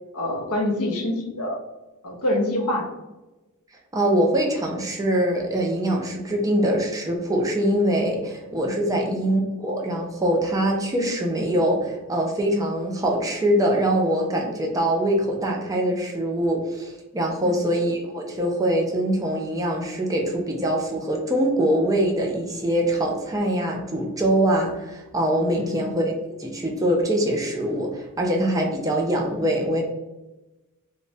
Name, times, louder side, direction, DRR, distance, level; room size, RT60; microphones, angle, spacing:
voice 1, 0.1-1.6 2.0-2.9 8.9-9.2 17.4-17.7 25.5-25.9, left 1 dB, 80° left, 1 dB, 0.6 m, -26 dB
voice 2, 3.9-26.1 26.4-29.8, right 1 dB, 15° right, 0 dB, 0.4 m, -23 dB
3.0 x 2.0 x 2.6 m, 1.1 s
head